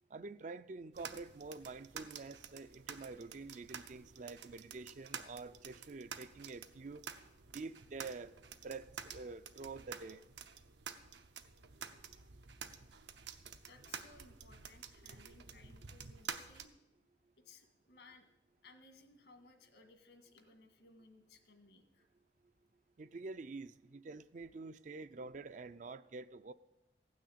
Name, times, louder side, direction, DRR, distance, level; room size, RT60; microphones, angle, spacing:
voice 1, 0.1-7.0 7.5-8.3 8.6-10.2 15.2-15.3 23.0-26.5, right 3 dB, 45° right, 0.4 m, -47 dB
sound 1, 0.9-16.7, right 7 dB, 80° right, 0.8 m, -50 dB
voice 2, 13.7-16.7 17.4-18.3 18.6-22.1, left 3 dB, 75° left, 1.8 m, -61 dB
15.5 x 6.4 x 8.6 m
head